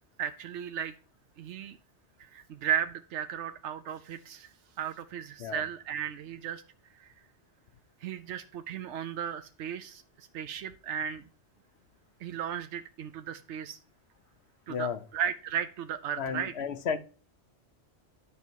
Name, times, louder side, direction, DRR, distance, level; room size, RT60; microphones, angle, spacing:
voice 1, 0.2-0.9 1.4-1.8 2.2-6.6 6.9-7.1 8.0-11.2 12.2-13.8 14.7-16.5, right 9 dB, 85° right, 0.9 m, -35 dB
voice 2, 14.7-15.0 16.2-17.0, left 6 dB, 70° left, 1.1 m, -33 dB
10.5 x 5.3 x 4.5 m
omnidirectional pair, 1.1 m